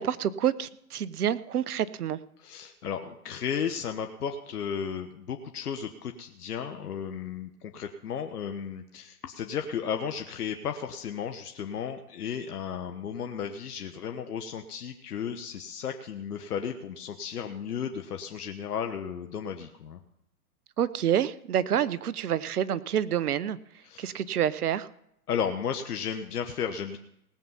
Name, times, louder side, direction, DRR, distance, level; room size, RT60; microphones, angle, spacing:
voice 1, 0.0-2.2 20.8-23.6 24.0-24.9, right 10 dB, 70° right, 16 dB, 0.9 m, -28 dB
voice 2, 2.4-20.0 23.8-24.1 25.3-27.0, left 7 dB, 75° left, 6 dB, 1.2 m, -34 dB
18.5 x 7.5 x 5.6 m, 0.78 s
hypercardioid pair, 135°, 46 cm